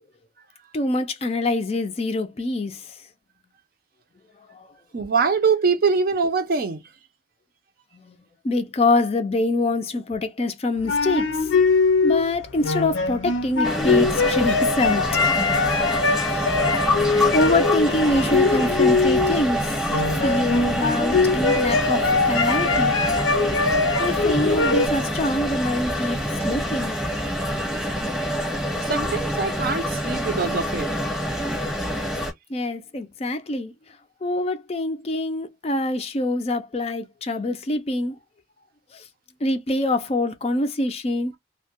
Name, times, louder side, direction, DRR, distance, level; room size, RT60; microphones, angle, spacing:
voice 1, 0.7-2.8 8.4-11.3 12.0-15.1 17.1-19.7 20.2-23.0 24.0-26.2 26.4-27.0 32.5-33.7 34.2-38.2 39.4-41.3, left 2 dB, 30° left, 0.4 m, -25 dB
voice 2, 4.9-6.8 28.8-30.9, right 5 dB, 50° right, 0.5 m, -23 dB
sound 1, 10.8-19.5 19.9-24.9, left 4 dB, 85° left, 0.6 m, -22 dB
sound 2, 13.6-32.3, equal, ahead, 0.8 m, -26 dB
2.2 x 2.1 x 2.8 m
head